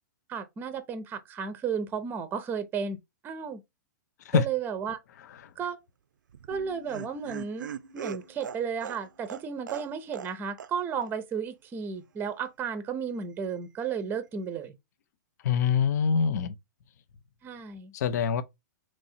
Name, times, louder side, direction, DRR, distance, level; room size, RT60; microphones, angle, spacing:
voice 1, 0.3-3.0 3.2-3.6 4.3-5.0 5.6-5.8 6.5-14.7 17.4-17.9, right 6 dB, 20° right, 0.6 m, -33 dB
Laughter, 6.3-10.3 10.6-10.7 11.0-11.1, right 8 dB, 80° right, 0.4 m, -40 dB
sound 1, 6.5-10.4, left 7 dB, 85° left, 1.4 m, -55 dB
voice 2, 15.4-16.6 17.9-18.4, left 6 dB, 65° left, 0.5 m, -24 dB
3.0 x 2.6 x 4.2 m
hypercardioid pair, 120°, 10 cm